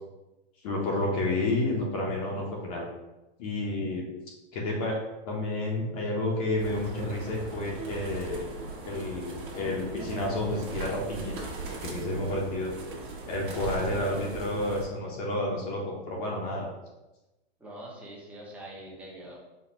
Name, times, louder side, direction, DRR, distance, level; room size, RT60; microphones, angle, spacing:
voice 1, 0.6-2.8 3.4-4.0 4.5-5.0 5.2-8.5 8.8-12.7 13.3-16.7, left 2 dB, 35° left, -2 dB, 0.7 m, -30 dB
sound 1, 6.6-14.9, right 4 dB, 50° right, 1.2 m, -39 dB
voice 2, 13.9-14.2 17.6-19.4, right 1 dB, 5° right, -4 dB, 0.6 m, -44 dB
4.2 x 2.2 x 4.0 m, 1.0 s
hypercardioid pair, 150°, 32 cm